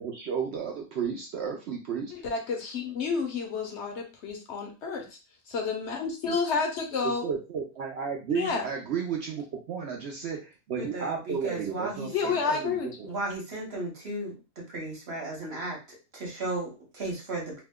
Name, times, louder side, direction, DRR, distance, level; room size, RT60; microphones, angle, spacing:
voice 1, 0.0-2.1 7.0-13.1, right 7 dB, 70° right, 1 dB, 0.6 m, -33 dB
voice 2, 2.1-5.2 5.5-7.2 8.3-8.7 12.1-13.1, left 5 dB, 60° left, 2 dB, 0.8 m, -30 dB
voice 3, 10.8-12.5 13.0-15.8 16.1-17.6, right 2 dB, 45° right, -2 dB, 1.1 m, -35 dB
2.7 x 2.1 x 3.5 m, 0.31 s
omnidirectional pair, 1.6 m